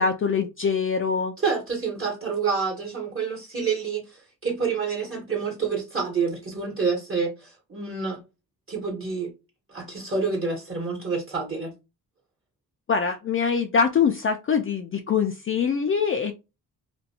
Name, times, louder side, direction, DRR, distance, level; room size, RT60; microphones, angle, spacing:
voice 1, 0.0-1.3 12.9-16.3, left 6 dB, 35° left, 0.4 m, -23 dB
voice 2, 1.4-8.2 8.7-9.3 9.7-11.7, right 5 dB, 35° right, 1.2 m, -28 dB
2.5 x 2.2 x 2.7 m
cardioid pair, 70°, 38 cm